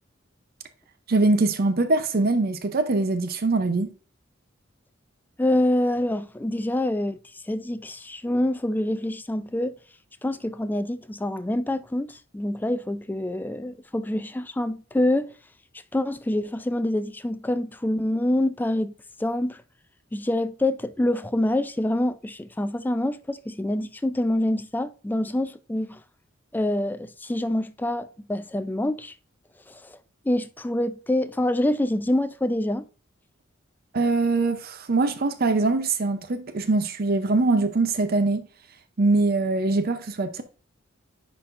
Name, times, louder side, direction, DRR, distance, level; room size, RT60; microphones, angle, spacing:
voice 1, 1.1-3.9 33.9-38.4 39.0-40.4, right 3 dB, 50° right, 0.6 m, -23 dB
voice 2, 5.4-9.8 10.2-15.3 15.9-18.9 19.2-19.6 20.1-26.0 26.5-29.1 29.7-30.0 30.3-32.9, left 1 dB, 10° left, 0.3 m, -26 dB
10.0 x 4.2 x 2.5 m
head